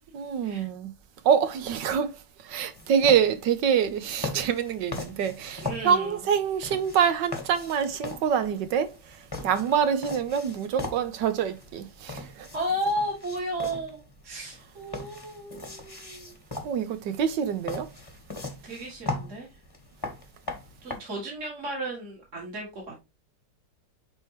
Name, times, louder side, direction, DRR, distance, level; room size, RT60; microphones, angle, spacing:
voice 1, 0.1-0.9 1.2-2.1 2.4-9.0 9.4-12.5 16.6-17.9, right 7 dB, 75° right, 1.5 m, -25 dB
sound 1, 2.7-21.0, left 2 dB, 15° left, 1.1 m, -40 dB
voice 2, 5.6-6.2 12.5-16.4 18.6-19.5 20.8-23.0, equal, 40° right, 2.4 m, -33 dB
9.8 x 3.6 x 3.0 m
omnidirectional pair, 2.0 m